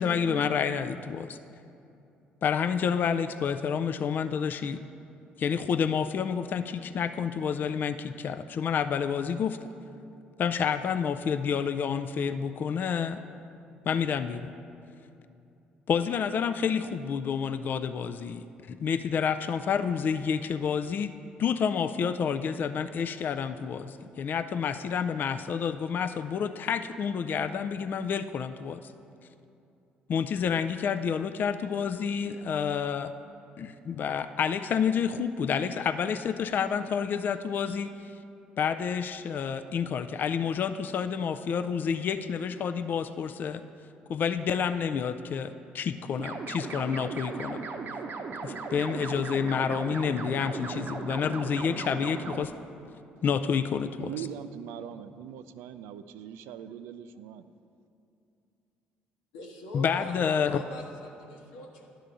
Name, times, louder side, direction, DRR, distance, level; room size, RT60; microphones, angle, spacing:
voice 1, 0.0-1.4 2.4-4.8 5.4-9.6 10.4-13.2 13.9-14.5 15.9-21.1 21.4-28.8 30.1-33.1 33.6-37.9 38.6-43.6 44.1-47.6 48.4-52.5 53.2-54.1 59.7-60.6, left 7 dB, 50° left, 10 dB, 0.3 m, -29 dB
sound 1, 46.2-52.5, right 4 dB, 55° right, 0.7 m, -37 dB
voice 2, 54.0-57.5, right 9 dB, 80° right, 12 dB, 0.3 m, -41 dB
voice 3, 59.3-61.9, left 1 dB, 90° left, -1 dB, 1.1 m, -44 dB
10.5 x 3.7 x 6.8 m, 2.7 s
supercardioid pair, 65°, 4 cm